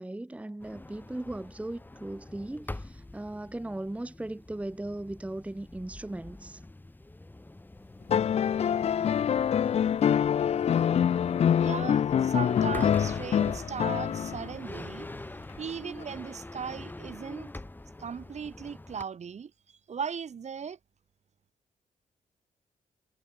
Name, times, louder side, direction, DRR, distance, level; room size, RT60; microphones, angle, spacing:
voice 1, 0.0-6.6, right 1 dB, 10° right, 0.9 m, -38 dB
sound 1, 0.6-19.0, left 2 dB, 10° left, 2.3 m, -45 dB
sound 2, 8.1-14.5 16.0-16.1, left 8 dB, 45° left, 0.4 m, -25 dB
voice 2, 11.6-15.1 15.6-17.5 18.0-20.8, right 7 dB, 50° right, 1.9 m, -38 dB
cardioid pair, 105°, 15 cm